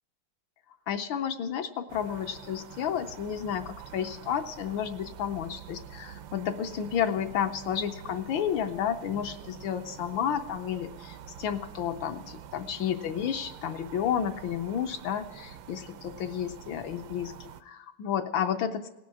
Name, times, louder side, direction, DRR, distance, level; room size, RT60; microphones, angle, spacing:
voice 1, 0.9-18.9, left 8 dB, 70° left, 7 dB, 1.3 m, -31 dB
sound 1, 1.9-17.6, right 9 dB, 75° right, 1.3 m, -46 dB
17.5 x 6.2 x 8.3 m, 1.0 s
omnidirectional pair, 2.4 m